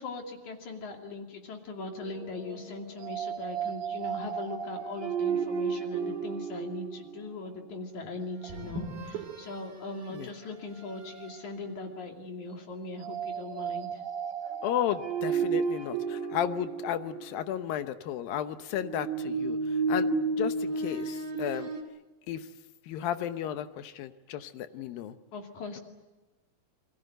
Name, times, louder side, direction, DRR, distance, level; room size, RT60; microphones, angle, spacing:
voice 1, 0.0-14.0 25.3-25.8, left 2 dB, 60° left, 3 dB, 3.9 m, -40 dB
sound 1, 2.0-7.3 8.4-9.7 10.1-10.3 10.9-11.4 13.0-17.5 18.7-21.8, right 5 dB, 80° right, 4.3 m, -33 dB
voice 2, 14.6-20.1 20.4-21.7 22.3-22.5 22.8-25.2, left 11 dB, 85° left, 10 dB, 2.8 m, -33 dB
29.0 x 22.0 x 8.0 m, 1.1 s
omnidirectional pair, 4.0 m